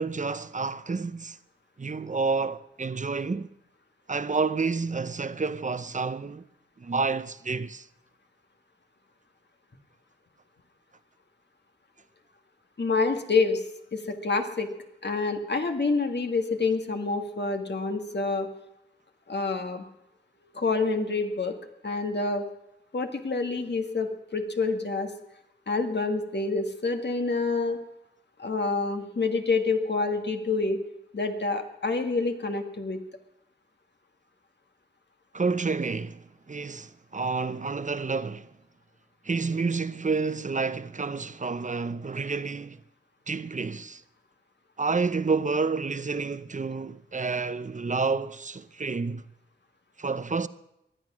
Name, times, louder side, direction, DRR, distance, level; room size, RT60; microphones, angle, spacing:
voice 1, 0.0-1.4 1.8-3.5 4.1-6.4 6.8-7.9 35.3-38.5 39.2-42.8 43.3-44.0 44.8-49.2 50.0-50.5, right 4 dB, 40° right, 0.7 m, -29 dB
voice 2, 12.8-13.6 13.9-14.7 15.0-18.5 19.3-19.8 20.5-21.6 21.8-22.5 22.9-25.1 25.7-27.8 28.4-30.8 31.1-33.0, left 3 dB, 60° left, 1.8 m, -27 dB
19.0 x 12.5 x 6.2 m
wide cardioid pair, 85°, 19 cm